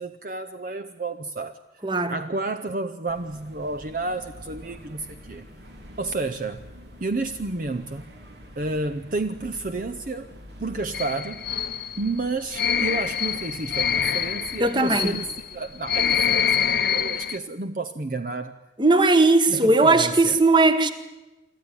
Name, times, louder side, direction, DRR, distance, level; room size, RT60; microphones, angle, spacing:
voice 1, 0.0-1.6 2.1-5.5 6.0-6.7 7.0-8.1 8.6-10.3 10.6-11.5 12.0-18.6 19.5-20.4, right 3 dB, 45° right, 0.7 m, -31 dB
voice 2, 1.8-2.2 14.6-15.2 18.8-20.9, right 2 dB, 25° right, 1.3 m, -18 dB
sound 1, 3.1-15.8, equal, 75° right, 3.5 m, -46 dB
sound 2, 10.9-17.4, left 7 dB, 55° left, 0.8 m, -25 dB
25.0 x 14.0 x 9.8 m
head